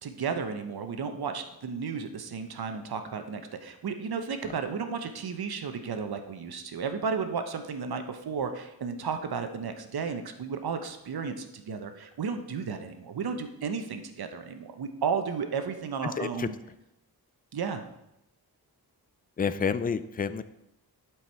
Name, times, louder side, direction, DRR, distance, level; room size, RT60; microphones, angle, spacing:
voice 1, 0.0-16.5 17.5-17.8, right 5 dB, 70° right, 7 dB, 0.9 m, -33 dB
voice 2, 16.2-16.5 19.4-20.4, left 6 dB, 25° left, 14 dB, 0.3 m, -29 dB
11.5 x 4.7 x 4.4 m, 0.86 s
wide cardioid pair, 140°, 39 cm